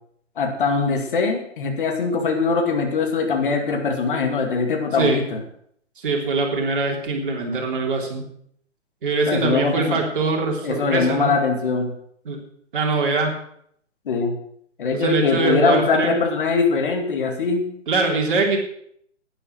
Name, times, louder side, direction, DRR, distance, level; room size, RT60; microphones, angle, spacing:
voice 1, 0.4-5.4 9.3-10.0 10.6-11.9 14.1-14.3 14.8-17.7, left 4 dB, 45° left, 4 dB, 2.3 m, -22 dB
voice 2, 6.0-8.2 9.0-11.3 12.2-12.4 12.7-13.4 14.9-16.2 17.9-18.6, right 3 dB, 45° right, 0 dB, 3.3 m, -23 dB
11.0 x 10.0 x 6.2 m, 0.66 s
figure-of-eight pair, 130°, 36 cm